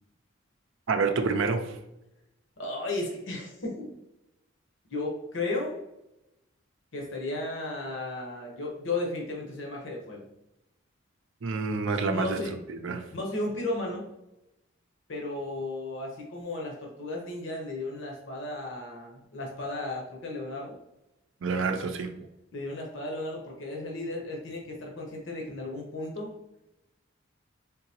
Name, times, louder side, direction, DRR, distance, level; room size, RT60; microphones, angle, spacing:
voice 1, 0.9-1.8 11.4-13.1 21.4-22.3, right 4 dB, 70° right, 6 dB, 0.4 m, -28 dB
voice 2, 2.6-3.9 4.9-5.8 6.9-10.3 12.1-12.5 13.1-14.1 15.1-20.8 22.5-26.3, left 2 dB, 65° left, -1 dB, 1.0 m, -34 dB
3.8 x 3.8 x 2.8 m, 0.90 s
head